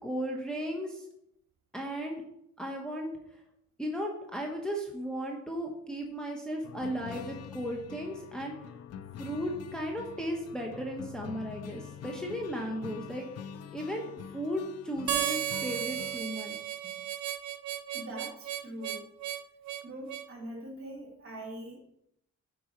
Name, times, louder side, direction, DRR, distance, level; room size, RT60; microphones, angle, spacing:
voice 1, 0.0-1.1 1.7-2.2 2.6-3.1 3.8-8.5 9.2-13.3 13.7-16.6, equal, ahead, -1 dB, 1.3 m, -35 dB
sound 1, 6.6-16.2, left 8 dB, 55° left, 0.6 m, -45 dB
Harmonica, 15.1-20.3, right 12 dB, 65° right, 0.6 m, -34 dB
voice 2, 17.9-19.0 19.8-21.8, right 1 dB, 45° right, 1 dB, 2.7 m, -42 dB
8.7 x 4.6 x 4.5 m, 0.78 s
cardioid pair, 90°, 30 cm